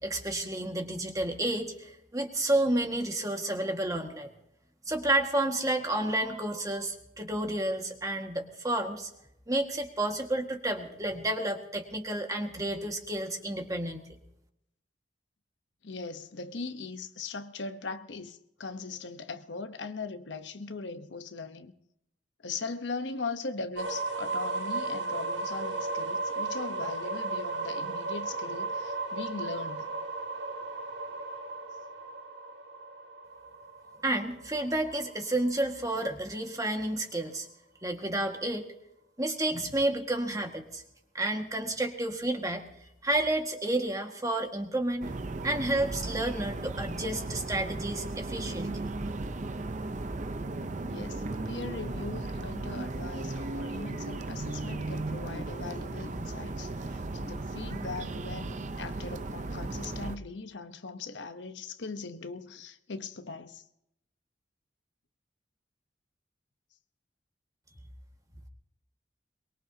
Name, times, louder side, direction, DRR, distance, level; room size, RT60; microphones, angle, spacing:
voice 1, 0.0-4.3 4.9-9.1 9.5-14.0 34.0-37.5 37.8-38.7 39.2-40.8 41.1-42.7 43.0-45.1 45.4-48.9, right 1 dB, 20° right, 1.8 m, -30 dB
voice 2, 15.8-21.7 22.4-29.9 50.9-63.6, left 4 dB, 75° left, 1.0 m, -40 dB
sound 1, 23.7-35.5, right 3 dB, 80° right, 1.7 m, -35 dB
sound 2, 45.0-60.2, right 2 dB, 40° right, 0.7 m, -36 dB
23.0 x 22.0 x 2.8 m
head